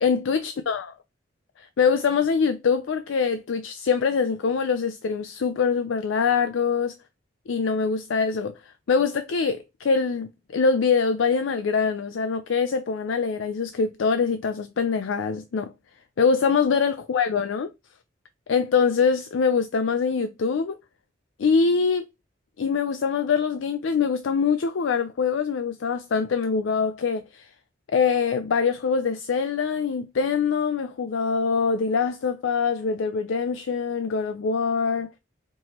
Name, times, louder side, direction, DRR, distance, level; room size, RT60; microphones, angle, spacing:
voice 1, 0.0-0.9 1.6-7.0 7.5-8.5 8.9-15.7 16.2-17.7 18.5-20.8 21.4-22.0 22.6-27.4 27.9-35.1, left 5 dB, 85° left, 0.4 m, -24 dB
4.4 x 3.0 x 2.9 m
head